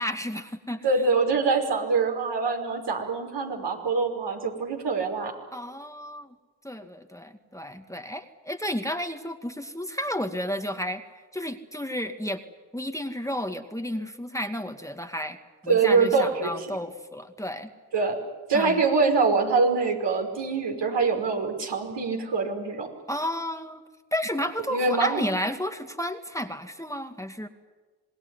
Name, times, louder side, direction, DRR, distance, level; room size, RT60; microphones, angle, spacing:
voice 1, 0.0-0.9 5.5-6.3 6.6-11.0 11.3-12.4 12.7-15.4 15.6-17.7 18.5-18.8 23.1-23.8 24.1-27.5, left 1 dB, 5° left, 6 dB, 2.2 m, -32 dB
voice 2, 0.8-5.3 15.7-16.7 17.9-18.2 18.5-22.9 24.7-25.3, right 4 dB, 60° right, 2 dB, 5.5 m, -24 dB
26.5 x 20.0 x 9.9 m, 1.3 s
hypercardioid pair, 45°, 46 cm